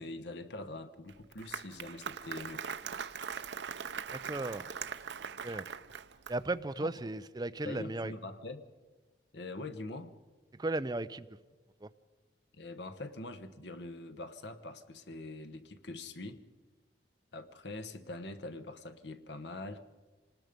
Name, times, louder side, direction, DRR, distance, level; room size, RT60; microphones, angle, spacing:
voice 1, 0.0-2.8 7.6-8.6 9.3-10.1 12.5-16.4 17.3-19.8, left 2 dB, 75° left, 1.1 m, -43 dB
Applause, 1.1-6.6, right 7 dB, 80° right, 0.7 m, -41 dB
voice 2, 4.1-4.6 5.4-5.6 6.3-8.1 10.6-11.3 11.8-11.9, right 2 dB, 20° right, 0.5 m, -35 dB
26.5 x 19.5 x 5.2 m
head